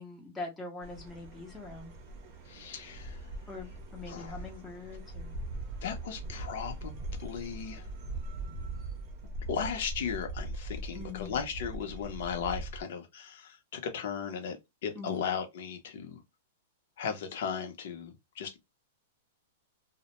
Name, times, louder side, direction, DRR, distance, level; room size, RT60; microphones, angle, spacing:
voice 1, 0.0-1.9 3.5-5.3 10.9-11.4 14.9-15.3, left 3 dB, 10° left, 0.6 m, -43 dB
sound 1, 0.8-12.8, right 2 dB, 40° right, 0.6 m, -41 dB
voice 2, 2.5-3.2 4.1-4.4 5.8-7.9 9.5-14.6 14.8-16.2 17.0-18.6, left 7 dB, 60° left, 0.7 m, -36 dB
2.1 x 2.1 x 2.9 m
supercardioid pair, 155°, 0 cm